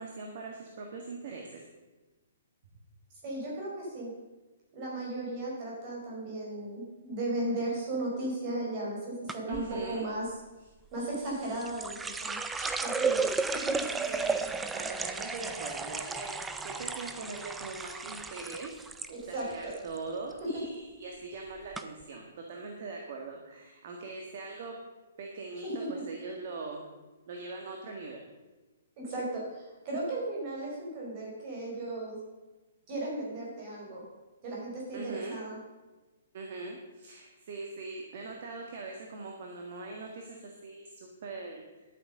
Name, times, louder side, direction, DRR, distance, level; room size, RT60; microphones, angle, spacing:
voice 1, 0.0-1.6 9.5-10.1 12.6-12.9 13.5-18.7 19.3-24.7 25.2-26.8 27.3-28.2 34.9-35.4 36.3-41.8, right 3 dB, 40° right, 1 dB, 1.7 m, -41 dB
voice 2, 3.2-4.1 4.7-10.2 10.9-12.4 12.8-13.3 19.1-19.8 20.5-20.6 25.6-25.9 29.0-32.2 32.9-34.0 34.4-35.6, right 2 dB, 25° right, -4 dB, 4.8 m, -36 dB
sound 1, 9.3-9.7 11.1-19.1 19.4-20.0 20.3-20.6 21.3-21.4 21.7-21.8, right 4 dB, 5° right, 0.4 m, -33 dB
11.0 x 8.9 x 6.6 m, 1.2 s
hypercardioid pair, 170°, 0 cm